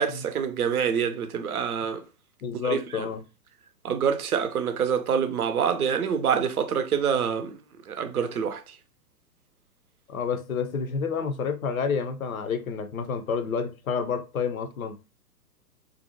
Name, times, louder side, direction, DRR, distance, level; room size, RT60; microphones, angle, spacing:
voice 1, 0.0-2.0 2.6-3.1 3.8-7.6 7.9-8.7, right 7 dB, 65° right, 0.5 m, -26 dB
voice 2, 2.4-3.2 10.1-15.0, left 6 dB, 60° left, 0.5 m, -29 dB
2.5 x 2.0 x 2.6 m
figure-of-eight pair, 115°, 49 cm